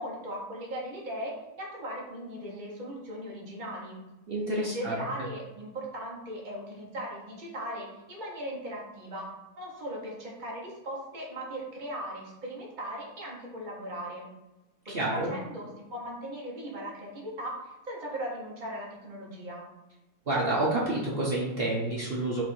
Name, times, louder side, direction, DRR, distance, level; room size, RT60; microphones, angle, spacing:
voice 1, 0.0-4.0 4.6-14.3 14.9-19.7, equal, 35° right, -3 dB, 1.0 m, -38 dB
voice 2, 4.3-5.0 14.8-15.3 20.3-22.4, right 2 dB, 55° right, -5 dB, 0.6 m, -29 dB
4.5 x 2.6 x 4.2 m, 1.0 s
omnidirectional pair, 1.9 m